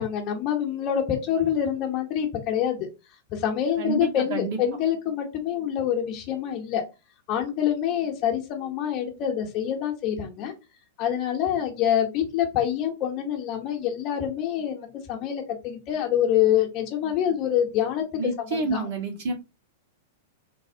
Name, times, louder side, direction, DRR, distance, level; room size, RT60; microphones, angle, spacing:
voice 1, 0.0-2.9 3.3-6.8 7.3-10.5 11.0-18.0 18.5-18.9, left 9 dB, 40° left, 0.7 m, -26 dB
voice 2, 3.8-4.6 18.2-19.3, right 3 dB, 55° right, 1.2 m, -28 dB
3.3 x 2.0 x 2.6 m
figure-of-eight pair, 100°, 0 cm